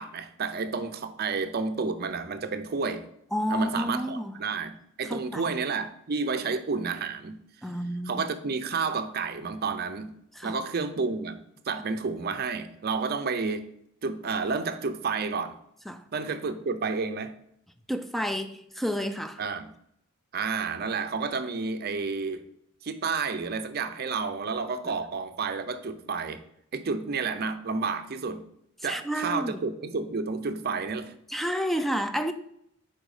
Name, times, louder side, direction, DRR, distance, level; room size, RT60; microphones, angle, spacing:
voice 1, 0.0-3.0 3.5-7.4 8.1-10.1 10.4-11.4 11.7-13.7 14.0-15.6 16.1-17.3 19.4-19.7 20.3-22.4 22.8-26.4 26.7-28.4 28.8-31.1, right 4 dB, 50° right, 0.5 m, -30 dB
voice 2, 3.3-4.4 5.1-5.5 7.6-8.3 10.4-10.6 15.9-16.1 17.9-19.4 24.9-25.0 28.8-29.6 31.3-32.3, equal, ahead, 0.3 m, -30 dB
5.0 x 4.4 x 4.9 m
head